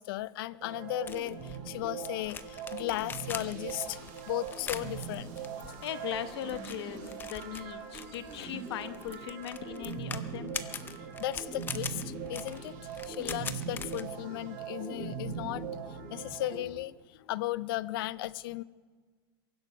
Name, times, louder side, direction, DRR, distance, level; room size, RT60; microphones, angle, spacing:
voice 1, 0.0-4.0 4.2-5.3 11.2-12.7 13.1-15.8 16.1-16.9 17.2-18.6, left 16 dB, 60° left, 19 dB, 0.5 m, -36 dB
sound 1, 0.6-16.6, right 6 dB, 50° right, 4.1 m, -41 dB
sound 2, 1.1-14.0, left 6 dB, 15° left, 0.6 m, -43 dB
voice 2, 5.8-10.5, left 11 dB, 75° left, 10 dB, 1.2 m, -39 dB
23.0 x 11.5 x 5.0 m, 1.5 s
supercardioid pair, 155°, 14 cm